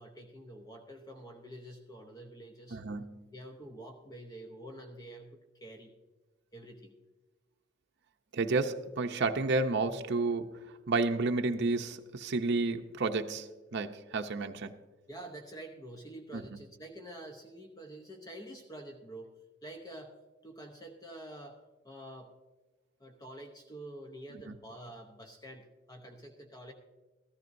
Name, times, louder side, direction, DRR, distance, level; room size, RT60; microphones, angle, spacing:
voice 1, 0.0-2.8 3.3-5.9 6.5-7.0 15.1-19.3 19.6-20.2 20.4-22.3 23.0-26.7, right 1 dB, 20° left, 2 dB, 0.8 m, -47 dB
voice 2, 2.7-3.2 8.3-14.8 16.3-16.4 24.5-24.6, right 3 dB, 60° right, 5 dB, 0.6 m, -31 dB
14.0 x 14.0 x 2.6 m, 1.2 s
head